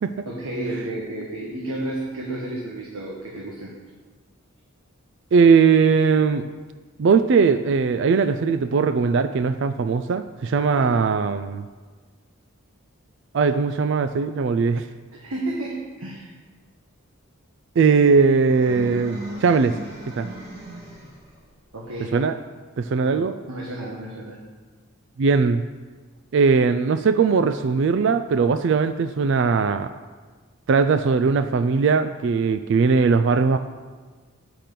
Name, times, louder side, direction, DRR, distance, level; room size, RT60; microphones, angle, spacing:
voice 1, 0.2-3.7 10.6-11.0 15.1-16.3 21.7-22.2 23.0-24.4, right 1 dB, 85° right, -3 dB, 1.4 m, -32 dB
voice 2, 5.3-6.5 7.0-11.7 13.3-14.8 17.8-19.7 20.2-20.3 22.1-22.3 22.8-23.3 25.2-25.6 26.3-29.9 30.7-33.6, right 5 dB, 55° right, 10 dB, 0.3 m, -19 dB
sound 1, 18.4-21.3, equal, 30° right, 2.5 m, -37 dB
9.0 x 5.9 x 6.7 m, 1.4 s
head